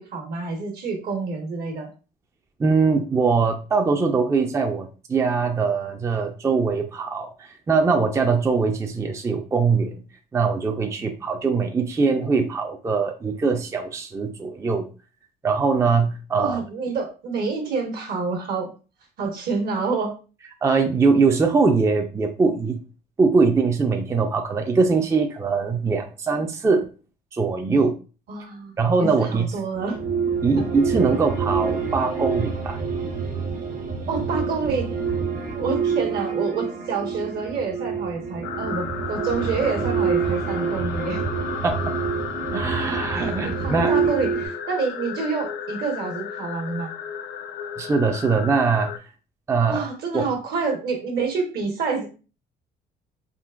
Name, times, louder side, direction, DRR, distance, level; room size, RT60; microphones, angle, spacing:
voice 1, 0.0-1.9 16.4-18.7 19.2-20.1 28.3-30.0 34.1-35.0 35.5-41.2 43.1-46.9 49.7-52.1, right 4 dB, 65° right, 2 dB, 1.2 m, -28 dB
voice 2, 2.6-10.0 10.3-14.9 15.4-16.6 20.6-22.8 23.2-26.9 27.3-28.0 28.8-29.6 30.4-32.8 41.6-41.9 42.5-43.9 47.8-48.9 49.5-49.8 50.1-50.2, right 4 dB, 15° right, 4 dB, 0.4 m, -22 dB
sound 1, 29.7-44.5, right 5 dB, 50° right, 0.9 m, -27 dB
sound 2, 38.4-49.0, left 8 dB, 75° left, 0.5 m, -34 dB
3.7 x 2.4 x 2.4 m, 0.34 s
cardioid pair, 110°, 17 cm